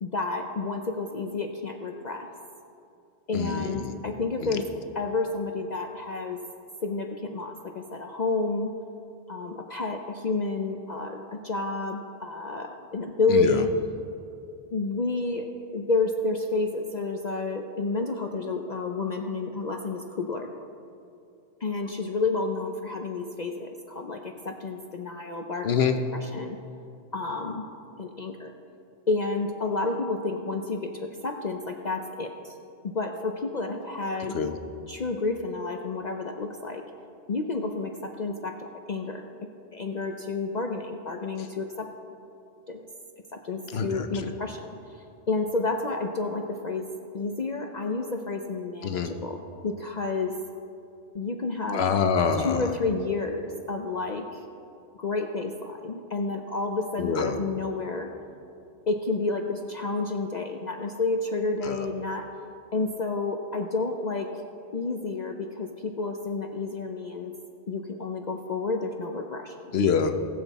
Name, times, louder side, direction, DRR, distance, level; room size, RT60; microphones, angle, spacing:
voice 1, 0.0-2.3 3.3-4.6 4.9-6.4 6.8-8.7 9.3-13.7 14.7-15.5 15.7-20.5 21.6-25.7 26.1-26.6 27.1-27.7 28.0-28.5 29.1-32.5 32.8-34.4 34.9-36.8 37.3-39.3 39.7-41.9 42.7-42.8 43.3-46.9 47.1-50.3 51.1-51.8 52.4-54.4 55.0-58.1 58.9-62.3 62.7-64.3 64.7-67.3 67.7-69.6, left 3 dB, 45° left, 4 dB, 0.7 m, -30 dB
voice 2, 3.3-4.0 4.4-4.6 13.3-13.6 25.6-26.0 34.3-34.5 43.7-44.3 48.8-49.1 51.7-52.6 57.0-57.4 61.6-61.7 69.7-70.1, left 6 dB, 65° left, 7 dB, 1.0 m, -25 dB
19.5 x 7.6 x 4.1 m, 2.6 s
omnidirectional pair, 1.2 m